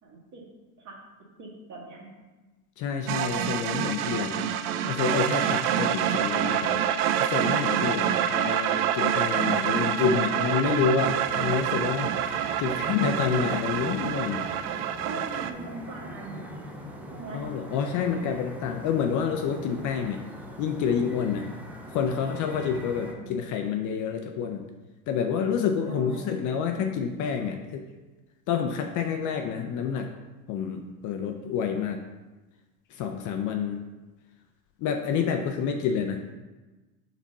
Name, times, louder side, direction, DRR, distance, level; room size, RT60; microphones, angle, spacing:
voice 1, 0.0-0.4 0.8-1.0 1.4-2.1 15.0-16.5 17.1-17.4 23.0-23.5 25.8-26.4, right 3 dB, 35° right, -2 dB, 2.1 m, -41 dB
voice 2, 2.8-4.5 4.9-6.8 7.2-14.5 17.3-20.3 20.6-21.5 21.9-24.7 25.1-27.8 28.5-30.1 30.5-32.0 32.9-33.8 34.8-36.2, left 7 dB, 40° left, 4 dB, 0.7 m, -28 dB
sound 1, 3.1-15.5, right 9 dB, 70° right, 0.7 m, -27 dB
sound 2, 10.6-23.1, right 1 dB, 5° right, 0.7 m, -42 dB
5.0 x 4.3 x 5.4 m, 1.2 s
hypercardioid pair, 105°, 47 cm